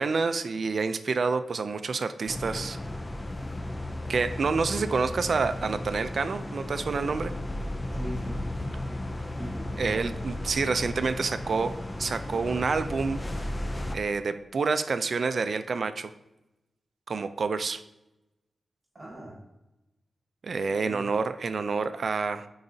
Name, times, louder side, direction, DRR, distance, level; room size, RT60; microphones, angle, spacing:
voice 1, 0.0-2.8 4.1-7.3 9.8-11.7 12.0-13.5 13.9-16.1 17.1-17.8 20.4-22.5, right 4 dB, 55° right, 10 dB, 0.4 m, -28 dB
sound 1, 2.3-14.0, left 1 dB, 20° left, 0.4 m, -35 dB
voice 2, 8.0-8.4 9.3-10.2 18.9-19.4 20.8-21.1, right 1 dB, 25° right, -4 dB, 1.7 m, -40 dB
10.5 x 3.9 x 2.7 m, 0.96 s
wide cardioid pair, 130°, 0 cm